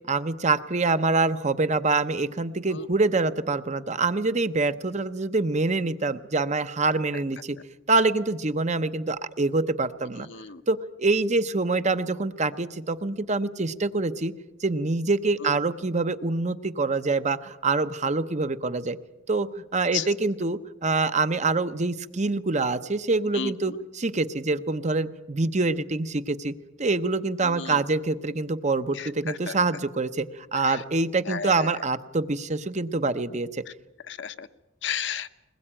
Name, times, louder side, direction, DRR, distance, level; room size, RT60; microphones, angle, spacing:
voice 1, 0.1-7.6 7.9-10.3 10.7-14.3 14.6-19.0 19.3-26.5 26.8-33.6, right 3 dB, 35° right, 11 dB, 0.8 m, -25 dB
voice 2, 10.3-10.6 15.4-15.5 19.9-20.1 23.3-23.5 27.4-27.8 28.9-29.5 30.7-30.8 31.3-31.7 34.1-34.5 34.8-35.3, left 7 dB, 65° left, 10 dB, 0.9 m, -33 dB
22.0 x 20.5 x 8.9 m, 1.0 s
head